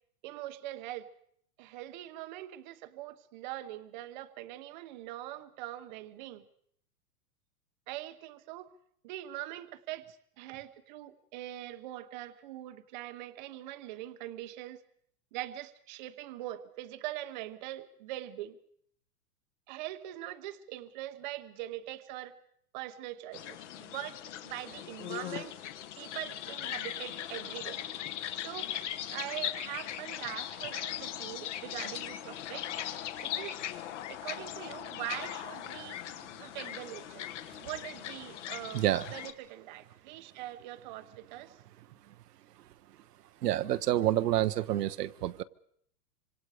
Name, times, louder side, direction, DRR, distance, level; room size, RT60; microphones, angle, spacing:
voice 1, 0.2-1.1 1.6-6.5 7.9-8.7 9.0-14.8 15.3-18.6 19.7-22.4 22.7-25.6 26.0-27.8 28.4-28.7 29.1-32.7 33.2-33.6 34.1-36.0 36.4-37.3 37.6-41.6, right 14 dB, 30° right, 10 dB, 0.9 m, -42 dB
sound 1, 23.3-39.3, left 11 dB, 45° left, 1.6 m, -39 dB
voice 2, 38.7-39.1 43.4-45.4, right 13 dB, 70° right, 13 dB, 1.0 m, -28 dB
26.0 x 25.5 x 5.0 m, 0.67 s
supercardioid pair, 170°, 50 cm